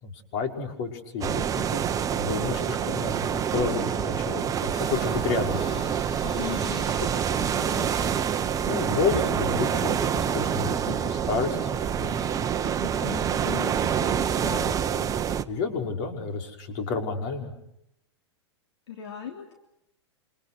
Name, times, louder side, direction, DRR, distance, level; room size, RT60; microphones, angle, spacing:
voice 1, 0.0-5.8 8.6-10.8 11.3-11.6 11.9-12.2 15.5-17.5, left 5 dB, 50° left, 3 dB, 5.8 m, -30 dB
sound 1, 1.2-15.4, right 8 dB, 25° right, 1.2 m, -27 dB
sound 2, 4.7-13.6, left 2 dB, 30° left, 5.2 m, -45 dB
voice 2, 6.2-7.9 10.3-10.4 10.6-11.1 12.6-15.1 18.9-19.5, left 9 dB, 70° left, 2 dB, 3.5 m, -39 dB
28.0 x 27.0 x 6.6 m, 0.79 s
hypercardioid pair, 100°, 15 cm